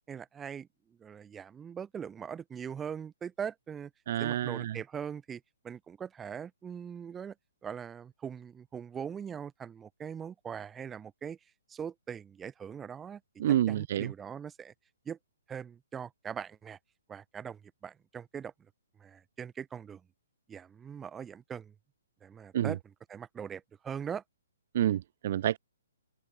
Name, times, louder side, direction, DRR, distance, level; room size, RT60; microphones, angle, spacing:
voice 1, 0.1-0.7 1.0-3.9 4.2-7.3 7.6-11.4 11.7-13.2 13.7-14.7 15.1-15.2 15.5-16.8 17.1-18.5 19.0-20.0 20.5-21.7 22.2-22.8 23.1-24.2, right 7 dB, 15° right, 0.8 m, -41 dB
voice 2, 4.1-4.8 13.4-14.1 22.5-22.7 24.7-25.6, right 11 dB, 50° right, 0.4 m, -28 dB
open air
hypercardioid pair, 140°, 0 cm